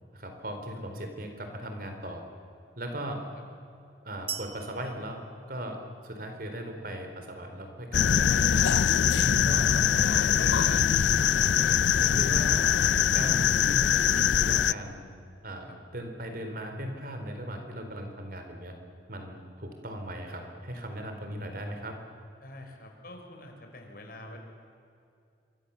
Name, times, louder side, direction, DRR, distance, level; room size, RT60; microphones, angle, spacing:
voice 1, 0.1-2.2 2.8-3.2 4.0-5.2 5.5-8.7 9.0-11.5 12.0-12.6 13.1-15.1 15.4-18.7 19.1-21.9, equal, 55° right, 5 dB, 4.1 m, -38 dB
voice 2, 3.0-3.4 15.6-15.8 22.4-24.4, left 1 dB, 55° left, 3 dB, 4.8 m, -47 dB
sound 1, 4.3-6.2, right 8 dB, 30° right, 1.1 m, -41 dB
sound 2, 7.9-14.7, left 8 dB, 75° left, 0.5 m, -23 dB
27.0 x 23.5 x 7.2 m, 2.6 s
head